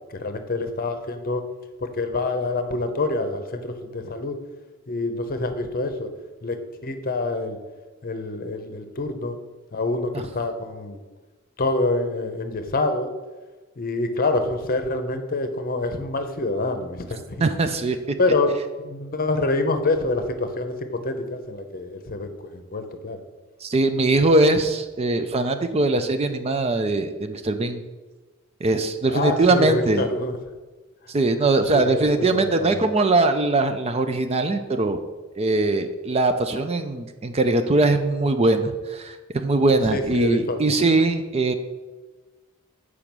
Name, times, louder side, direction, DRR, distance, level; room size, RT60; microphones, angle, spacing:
voice 1, 0.1-1.4 1.8-4.4 4.9-6.1 6.4-6.6 6.8-7.6 8.0-9.4 9.7-11.0 11.6-13.1 13.8-17.5 18.2-23.2 29.1-30.4 31.7-32.9 39.9-40.8, left 2 dB, 45° left, 8 dB, 0.8 m, -26 dB
voice 2, 17.4-18.0 23.6-27.8 28.6-30.1 31.1-35.0 35.4-41.5, right 2 dB, 30° right, 8 dB, 0.4 m, -21 dB
7.0 x 4.9 x 6.0 m, 1.2 s
head